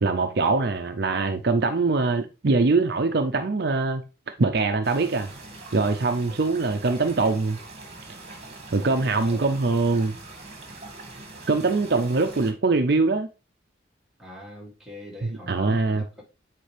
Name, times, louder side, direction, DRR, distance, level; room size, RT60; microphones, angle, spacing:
voice 1, 0.0-4.0 4.4-5.3 5.7-7.6 8.7-10.2 11.5-13.3 15.2-16.0, right 3 dB, 55° right, 0.6 m, -23 dB
sound 1, 4.8-12.5, right 2 dB, 35° right, 1.8 m, -43 dB
voice 2, 8.7-9.7 14.2-16.2, left 1 dB, 5° right, 1.8 m, -43 dB
9.0 x 4.4 x 3.3 m
head